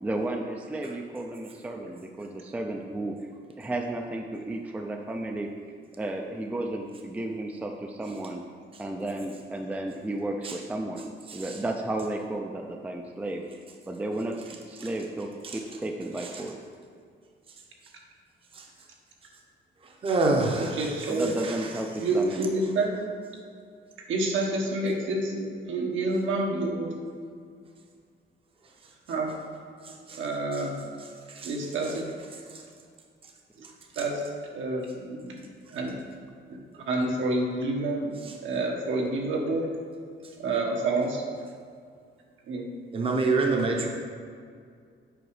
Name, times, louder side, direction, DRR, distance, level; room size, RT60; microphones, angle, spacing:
voice 1, 0.0-3.2 3.6-5.5 6.0-8.4 8.8-13.5 13.9-16.6 21.1-22.5, right 1 dB, 10° right, 3 dB, 0.4 m, -33 dB
voice 2, 20.0-21.1 21.4-21.5 30.1-30.2 31.4-31.5 42.9-43.9, right 3 dB, 30° right, 1 dB, 0.7 m, -25 dB
voice 3, 20.5-21.3 22.0-22.9 24.1-26.9 29.1-29.3 30.1-30.8 31.4-32.0 33.9-34.2 34.5-35.4 35.7-35.9 36.7-39.7 40.4-41.2 42.5-42.7, right 2 dB, 80° right, 0 dB, 1.4 m, -28 dB
7.8 x 5.0 x 4.8 m, 2.2 s
wide cardioid pair, 175°, 20 cm